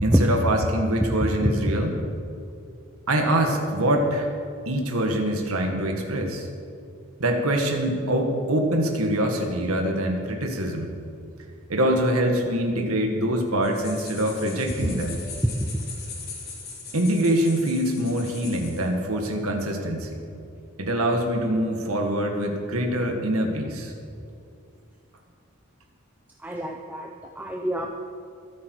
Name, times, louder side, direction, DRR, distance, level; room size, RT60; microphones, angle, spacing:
voice 1, 0.0-1.9 3.1-4.3 4.7-6.5 7.2-10.9 11.7-15.2 16.9-20.2 20.8-23.9, right 1 dB, 80° right, 2 dB, 1.8 m, -24 dB
sound 1, 13.6-18.9, left 4 dB, 45° left, 3.5 m, -40 dB
voice 2, 26.4-27.1 27.4-27.9, equal, 10° right, 0 dB, 0.7 m, -24 dB
23.0 x 8.6 x 4.7 m, 2.5 s
head